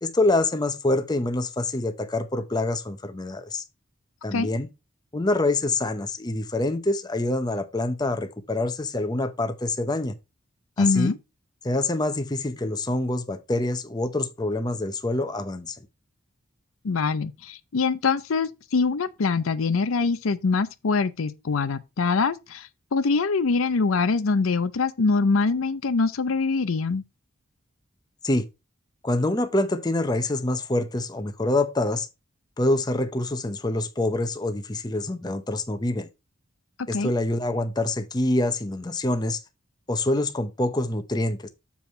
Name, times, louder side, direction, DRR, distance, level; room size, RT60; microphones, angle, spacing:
voice 1, 0.0-3.6 4.2-4.7 5.1-10.1 10.8-11.1 11.6-15.8 28.2-28.4 29.0-32.1 32.6-36.1 36.9-39.4 39.9-41.5, left 2 dB, 20° left, 0.7 m, -26 dB
voice 2, 10.8-11.2 16.8-27.0 36.8-37.1, left 4 dB, 80° left, 0.6 m, -24 dB
7.0 x 4.7 x 4.3 m
head